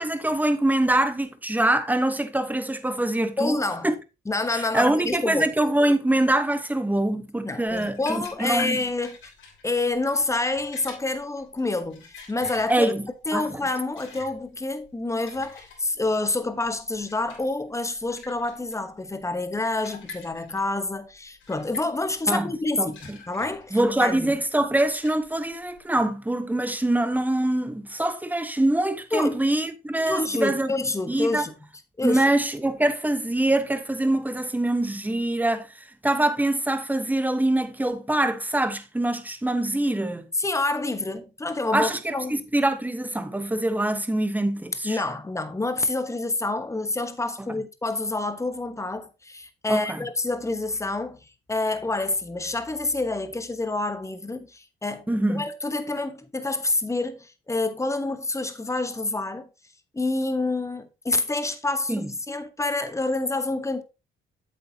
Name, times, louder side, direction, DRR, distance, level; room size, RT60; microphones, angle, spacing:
voice 1, 0.0-3.6 3.8-3.9 4.5-8.8 12.7-13.0 13.3-13.5 22.3-22.5 22.8-23.2 23.7-31.5 32.0-40.3 41.7-45.0 47.5-47.6 49.7-50.0 55.1-55.4 61.9-62.1, right 1 dB, 10° right, 1.1 m, -24 dB
voice 2, 3.4-3.9 4.3-5.5 7.4-9.3 9.6-12.9 13.3-24.4 29.1-29.4 30.1-31.5 32.0-32.2 40.4-42.4 44.8-51.2 51.5-59.5 59.9-63.8, left 2 dB, 15° left, 1.1 m, -28 dB
sound 1, 7.6-25.8, left 4 dB, 70° left, 3.4 m, -47 dB
8.1 x 7.8 x 2.8 m
cardioid pair, 90°, 20 cm